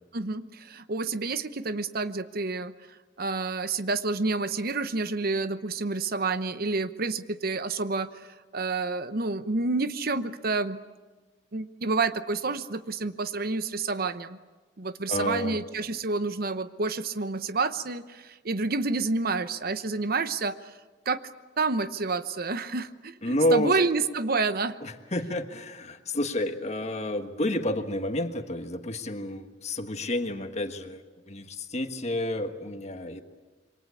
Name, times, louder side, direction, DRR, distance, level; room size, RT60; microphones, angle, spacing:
voice 1, 0.1-2.7 3.2-10.8 11.5-14.4 14.8-20.7 21.1-21.2 21.6-24.8, right 3 dB, 55° right, 12 dB, 0.9 m, -29 dB
voice 2, 15.1-15.6 23.2-23.7 24.8-33.2, left 1 dB, 40° left, 7 dB, 1.6 m, -30 dB
27.5 x 23.5 x 8.4 m, 1.3 s
head